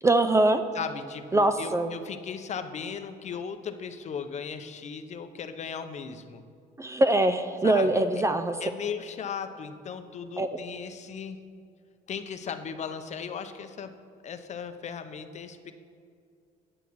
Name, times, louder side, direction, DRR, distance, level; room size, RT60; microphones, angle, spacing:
voice 1, 0.0-0.6 1.3-1.9 6.8-8.5 10.4-10.6, right 2 dB, 15° right, 10 dB, 0.4 m, -23 dB
voice 2, 0.7-6.4 7.6-8.0 8.6-11.4 12.1-13.9 14.2-15.7, left 6 dB, 45° left, 9 dB, 0.7 m, -37 dB
9.8 x 9.3 x 4.6 m, 2.3 s
cardioid pair, 110°, 17 cm